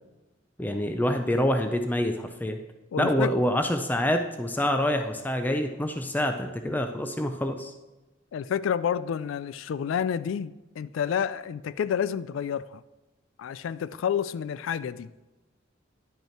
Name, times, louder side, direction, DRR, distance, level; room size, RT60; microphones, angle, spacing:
voice 1, 0.6-2.6 3.0-7.7, left 1 dB, 10° left, 6 dB, 0.4 m, -26 dB
voice 2, 2.9-3.3 8.3-12.8 13.4-15.1, left 8 dB, 85° left, 17 dB, 0.3 m, -29 dB
11.0 x 5.4 x 4.4 m, 1.1 s
head